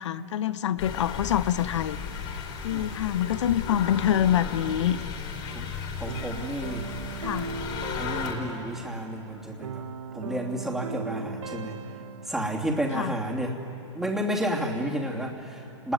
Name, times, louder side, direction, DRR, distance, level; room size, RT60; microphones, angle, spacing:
voice 1, 0.0-2.0 2.6-5.0 7.2-7.5 12.9-13.1, left 11 dB, 70° left, 15 dB, 0.9 m, -26 dB
sound 1, 0.8-8.3, left 6 dB, 50° left, 4.8 m, -35 dB
voice 2, 2.7-3.0 5.5-5.7 6.0-6.9 8.0-9.9 10.1-11.8 12.2-13.6 13.9-15.9, right 1 dB, ahead, -1 dB, 2.9 m, -31 dB
sound 2, 6.1-12.3, right 6 dB, 80° right, 1.5 m, -39 dB
29.5 x 20.5 x 9.6 m, 2.8 s
hypercardioid pair, 130°, 16 cm